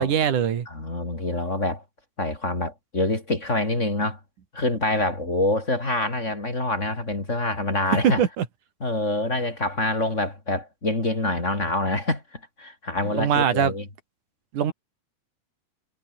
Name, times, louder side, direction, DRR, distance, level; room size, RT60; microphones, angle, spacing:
voice 1, 0.0-0.7 8.0-8.5 13.1-13.7 14.5-14.7, right 8 dB, 65° right, 3.8 m, -22 dB
voice 2, 0.7-1.8 2.2-4.2 4.5-8.2 8.8-13.9, left 2 dB, 20° left, 4.3 m, -26 dB
omnidirectional pair, 3.9 m